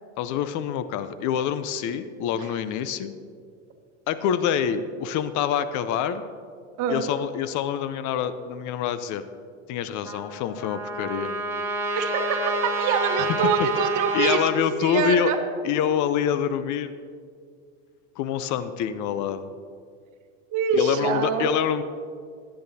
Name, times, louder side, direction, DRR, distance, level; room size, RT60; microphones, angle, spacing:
voice 1, 0.2-3.1 4.1-6.2 6.9-9.2 9.7-11.3 14.1-15.3 15.6-16.9 18.2-19.5 20.7-21.8, left 8 dB, 50° left, 12 dB, 0.6 m, -26 dB
voice 2, 6.8-7.1 11.9-14.4 14.8-15.4 20.5-21.5, right 5 dB, 50° right, 5 dB, 1.3 m, -24 dB
Trumpet, 10.0-14.6, right 2 dB, 5° right, 1.8 m, -29 dB
16.0 x 8.8 x 2.8 m, 2.2 s
hypercardioid pair, 95°, 38 cm